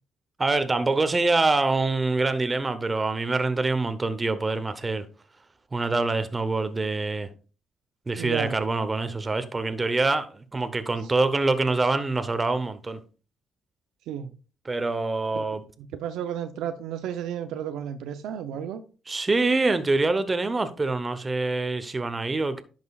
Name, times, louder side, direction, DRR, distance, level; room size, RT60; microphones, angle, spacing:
voice 1, 0.4-5.0 5.7-7.3 8.1-13.0 14.6-15.6 19.1-22.6, right 3 dB, 25° right, 0.8 m, -25 dB
voice 2, 8.2-8.6 14.1-14.3 15.3-15.4 15.9-18.8, right 9 dB, 85° right, 0.6 m, -32 dB
11.0 x 6.1 x 2.4 m
cardioid pair, 90°, 0 cm